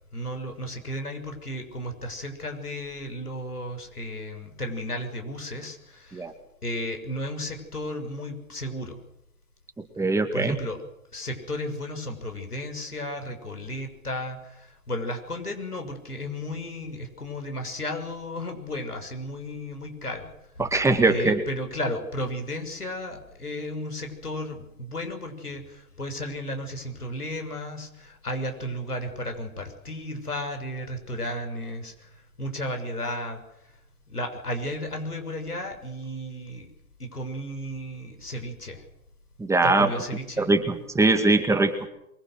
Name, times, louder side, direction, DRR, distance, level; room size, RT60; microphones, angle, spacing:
voice 1, 0.1-6.3 6.6-9.0 10.3-10.8 11.1-20.3 21.1-32.1 32.4-33.4 34.1-36.7 37.0-38.8 39.6-40.5, left 1 dB, 85° left, 5 dB, 6.6 m, -34 dB
voice 2, 10.0-10.6 20.6-21.4 39.4-39.9 40.4-41.7, right 3 dB, 5° right, 6 dB, 2.0 m, -21 dB
24.0 x 23.5 x 6.6 m, 0.81 s
figure-of-eight pair, 120°, 44 cm